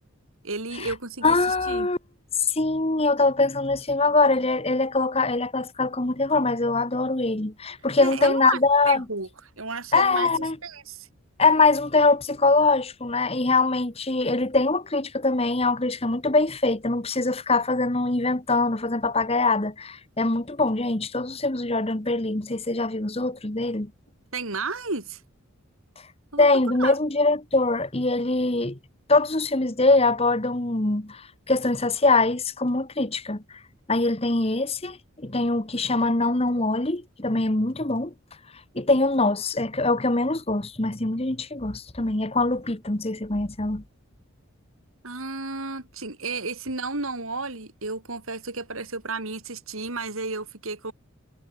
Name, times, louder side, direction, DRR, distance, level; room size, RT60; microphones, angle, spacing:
voice 1, 0.4-1.9 8.0-8.6 8.9-9.3 9.6-11.1 24.3-25.2 26.3-26.5 26.8-26.9 45.0-50.9, right 3 dB, 75° right, 3.5 m, -32 dB
voice 2, 1.2-2.0 2.5-9.0 9.9-10.6 11.4-23.9 26.4-28.8 29.1-33.4 33.9-38.1 38.7-43.8, left 3 dB, 30° left, 1.4 m, -23 dB
head